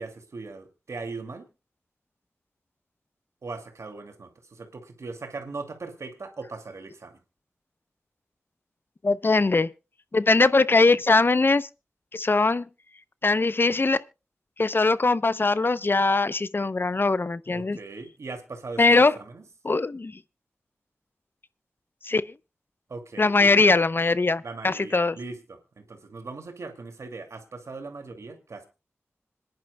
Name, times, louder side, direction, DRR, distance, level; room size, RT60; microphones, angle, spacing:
voice 1, 0.0-1.5 3.4-7.2 17.5-19.4 22.9-23.5 24.4-28.7, right 3 dB, 75° right, 2.3 m, -39 dB
voice 2, 9.0-9.7 10.1-11.7 12.1-12.7 13.2-14.0 14.6-17.8 18.8-19.1 19.6-20.2 22.0-22.3 23.2-25.2, left 3 dB, 45° left, 0.6 m, -21 dB
26.0 x 10.5 x 2.2 m
cardioid pair, 45°, 5 cm